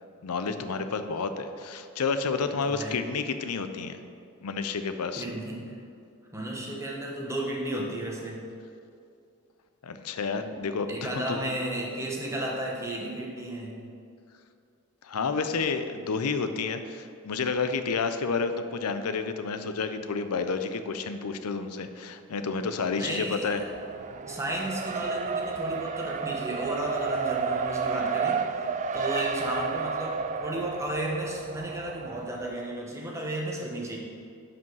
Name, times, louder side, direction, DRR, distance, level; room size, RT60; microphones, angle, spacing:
voice 1, 0.2-4.0 4.4-5.2 9.8-11.4 15.0-23.6, left 4 dB, 85° left, 9 dB, 0.6 m, -30 dB
voice 2, 2.4-3.0 5.2-5.8 6.3-8.5 10.9-13.8 23.0-23.6 24.3-28.7 28.9-34.0, right 1 dB, 15° right, -2 dB, 1.3 m, -33 dB
Race car auto racing, 23.5-32.6, right 5 dB, 35° right, 0.3 m, -31 dB
11.0 x 5.1 x 4.7 m, 2.5 s
head